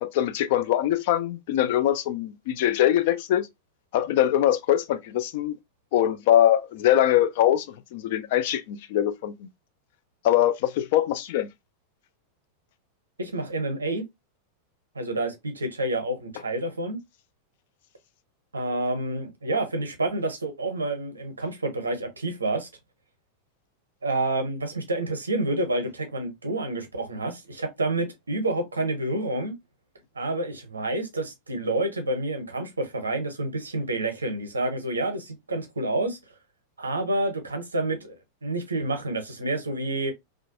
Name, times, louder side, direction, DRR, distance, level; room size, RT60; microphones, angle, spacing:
voice 1, 0.0-3.5 3.9-5.6 5.9-9.4 10.2-11.5, left 11 dB, 50° left, 0.3 m, -23 dB
voice 2, 13.2-14.0 14.9-17.0 18.5-22.7 24.0-29.5 30.1-36.2 36.8-38.2 38.4-40.1, right 2 dB, 75° right, 0.7 m, -28 dB
2.4 x 2.2 x 2.6 m
figure-of-eight pair, 90°, 0 cm